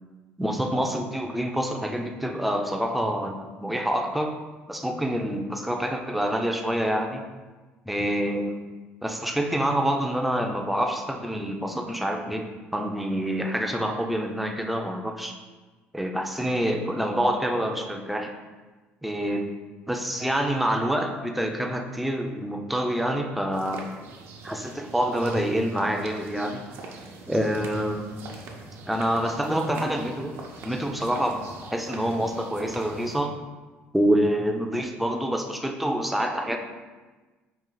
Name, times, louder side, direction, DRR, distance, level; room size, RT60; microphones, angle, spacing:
voice 1, 0.4-4.3 4.7-7.2 7.9-8.6 9.0-12.5 12.7-15.3 15.9-18.3 19.0-19.5 19.9-23.9 24.4-26.6 27.3-28.2 28.9-30.4 30.6-33.4 33.9-36.6, equal, ahead, 3 dB, 0.4 m, -27 dB
sound 1, 23.5-33.2, right 3 dB, 65° right, 0.6 m, -42 dB
4.5 x 2.4 x 3.8 m, 1.3 s
cardioid pair, 105°, 5 cm